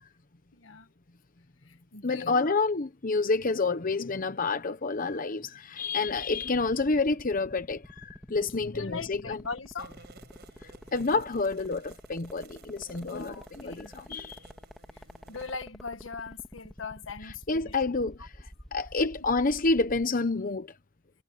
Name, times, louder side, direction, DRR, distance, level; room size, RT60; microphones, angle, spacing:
voice 1, 0.5-0.9 1.7-2.6 8.7-10.0 13.1-13.9 14.9-17.8 19.0-19.1, left 4 dB, 80° left, 1.6 m, -40 dB
voice 2, 2.0-9.4 10.9-14.4 17.5-20.7, left 3 dB, 45° left, 0.9 m, -29 dB
sound 1, 6.0-20.1, equal, ahead, 1.7 m, -47 dB
sound 2, 9.8-15.5, right 4 dB, 60° right, 6.6 m, -55 dB
head